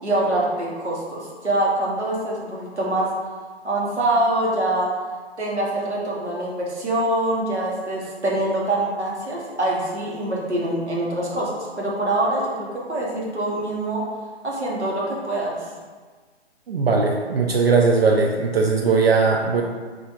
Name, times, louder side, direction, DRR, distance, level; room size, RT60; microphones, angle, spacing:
voice 1, 0.0-3.1 3.6-4.9 5.4-14.0 14.4-15.6, right 1 dB, 80° right, -4 dB, 1.1 m, -24 dB
voice 2, 16.7-19.6, right 4 dB, 65° right, 0 dB, 0.5 m, -19 dB
4.5 x 2.5 x 2.4 m, 1.4 s
figure-of-eight pair, 130°, 33 cm